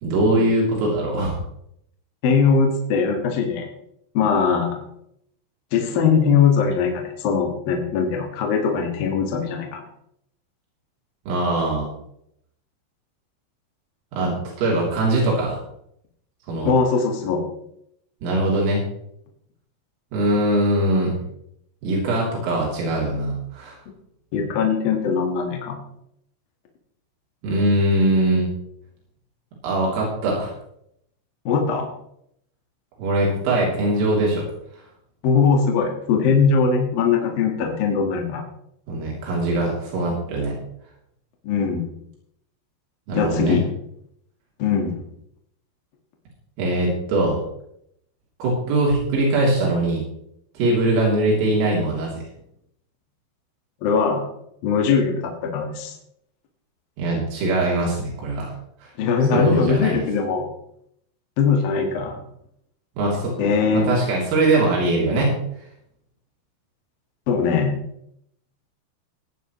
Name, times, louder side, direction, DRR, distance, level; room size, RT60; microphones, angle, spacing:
voice 1, 0.0-1.4 11.3-11.9 14.1-15.6 16.5-16.7 18.2-18.8 20.1-21.1 21.8-23.8 27.4-28.5 29.6-30.5 33.0-34.5 38.9-40.6 43.1-43.6 46.6-47.4 48.4-50.1 50.6-52.2 57.0-58.5 58.8-58.9 59.3-60.0 63.0-63.3 63.7-65.4, right 1 dB, 80° right, -4 dB, 5.7 m, -21 dB
voice 2, 2.2-3.7 4.1-4.8 5.7-9.8 16.6-17.4 24.3-25.8 31.4-31.9 35.2-38.4 41.4-41.8 43.1-43.6 44.6-45.0 53.8-54.3 54.6-55.9 59.0-60.4 61.4-62.2 63.4-64.0 67.3-67.8, left 5 dB, 60° left, 2 dB, 2.9 m, -20 dB
17.0 x 11.0 x 3.1 m, 0.73 s
omnidirectional pair, 5.8 m